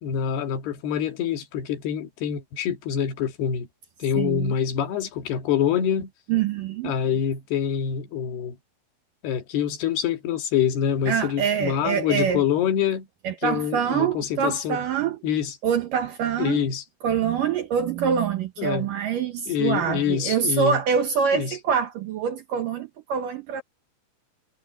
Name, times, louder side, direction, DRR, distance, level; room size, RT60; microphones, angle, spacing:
voice 1, 0.0-3.7 4.0-6.1 6.8-8.6 9.2-13.1 13.4-14.8 15.2-15.5 16.4-16.8 18.6-18.9 19.5-20.8 21.3-21.6, left 8 dB, 70° left, 3.7 m, -25 dB
voice 2, 4.2-4.5 6.3-7.0 11.1-12.4 13.2-15.2 15.6-16.7 17.0-23.6, right 7 dB, 70° right, 2.2 m, -25 dB
omnidirectional pair, 5.0 m